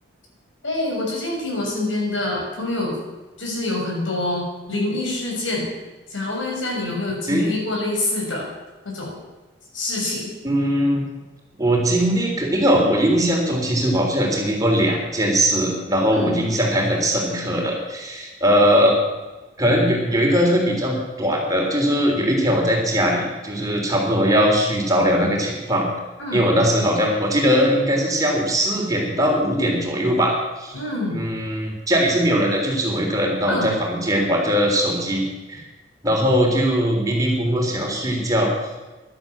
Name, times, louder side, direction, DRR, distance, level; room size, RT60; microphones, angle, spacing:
voice 1, 0.6-3.0 3.4-5.7 6.1-8.5 8.8-9.1 9.7-10.3 16.1-16.3 26.2-26.4 30.7-31.2 33.5-33.8, left 2 dB, 85° left, -1 dB, 6.6 m, -26 dB
voice 2, 10.4-11.0 11.6-19.0 19.6-25.9 26.3-30.7 31.1-35.2 35.5-35.6 36.0-38.5, equal, 20° right, -1 dB, 3.5 m, -20 dB
15.0 x 11.5 x 7.3 m, 1.1 s
head